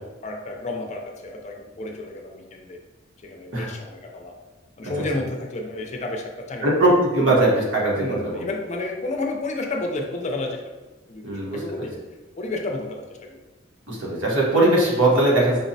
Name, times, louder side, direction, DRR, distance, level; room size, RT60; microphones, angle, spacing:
voice 1, 0.0-2.8 3.2-4.4 4.8-7.4 8.0-10.6 11.1-11.9 12.4-13.4, left 2 dB, 35° left, 2 dB, 0.4 m, -31 dB
voice 2, 6.6-8.4 11.2-11.9 13.9-15.6, right 1 dB, 75° right, -4 dB, 1.0 m, -20 dB
5.2 x 2.0 x 2.6 m, 1.2 s
head